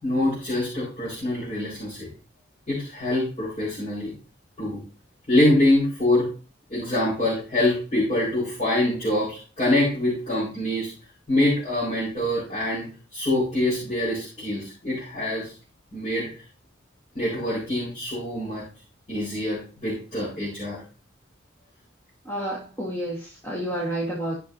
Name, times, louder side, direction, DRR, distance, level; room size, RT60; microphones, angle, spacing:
voice 1, 0.0-2.1 2.7-4.1 4.6-4.8 5.3-6.3 6.7-10.9 11.3-12.8 13.1-15.5 15.9-16.3 17.1-18.6 19.1-20.8, left 1 dB, 35° left, -9 dB, 4.4 m, -25 dB
voice 2, 22.2-24.4, right 1 dB, 15° left, -5 dB, 1.4 m, -30 dB
13.5 x 5.7 x 2.7 m, 0.37 s
head